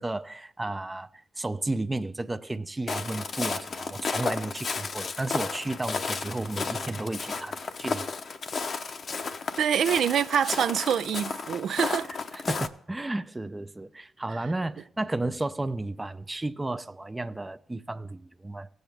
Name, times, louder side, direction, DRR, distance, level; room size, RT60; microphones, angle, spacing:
voice 1, 0.0-8.1 12.1-18.7, right 2 dB, 20° right, 0.5 m, -33 dB
Walk footsteps, 2.9-12.7, left 4 dB, 55° left, 0.8 m, -33 dB
voice 2, 9.6-12.1, right 8 dB, 75° right, 0.4 m, -25 dB
18.5 x 7.8 x 3.4 m
cardioid pair, 65°, 0 cm